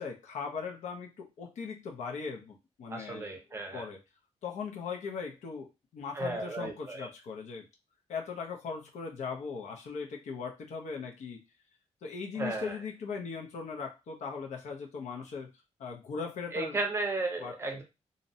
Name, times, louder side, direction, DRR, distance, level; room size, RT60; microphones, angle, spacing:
voice 1, 0.0-3.4 3.7-4.0 4.4-7.7 8.1-11.4 12.0-15.5 15.8-16.8 17.4-17.6, left 5 dB, 75° left, 1 dB, 0.5 m, -39 dB
voice 2, 2.9-3.8 6.1-7.1 12.3-12.8 16.5-17.8, right 3 dB, 20° right, 3 dB, 0.5 m, -34 dB
2.6 x 2.0 x 2.7 m, 0.26 s
wide cardioid pair, 175°, 12 cm